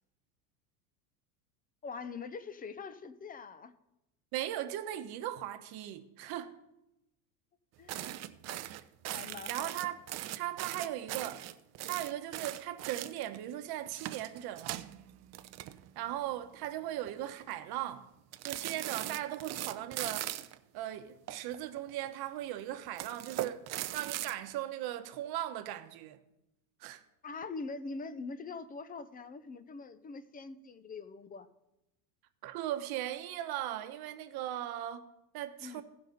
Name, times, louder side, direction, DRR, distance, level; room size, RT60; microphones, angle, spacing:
voice 1, 1.8-3.7 7.8-8.2 8.5-8.8 9.1-9.7 27.2-31.5 35.6-35.8, left 4 dB, 20° left, 0.6 m, -43 dB
voice 2, 4.3-6.6 8.7-8.8 9.5-10.0 10.4-11.4 11.9-14.8 16.0-18.1 18.4-20.4 20.7-23.7 23.9-26.2 26.8-27.0 32.4-35.8, right 12 dB, 50° right, 1.1 m, -38 dB
sound 1, 7.9-13.4 13.8-16.2 16.4-16.7 17.1-17.5 18.3-20.6 21.3-22.1 22.8-24.3, right 14 dB, 35° right, 0.5 m, -40 dB
16.5 x 5.8 x 4.0 m
supercardioid pair, 105°, 48 cm